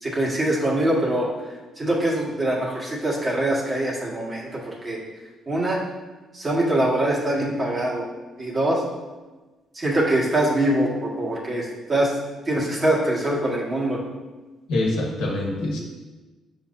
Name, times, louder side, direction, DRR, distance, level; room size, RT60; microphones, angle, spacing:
voice 1, 0.0-1.3 1.8-5.0 5.5-5.8 6.3-8.1 8.4-8.8 9.8-12.1 12.5-14.0, right 1 dB, 30° right, -4 dB, 1.8 m, -23 dB
voice 2, 14.7-15.8, left 2 dB, 90° left, -2 dB, 1.3 m, -24 dB
6.9 x 5.5 x 2.7 m, 1.2 s
cardioid pair, 90°, 0 cm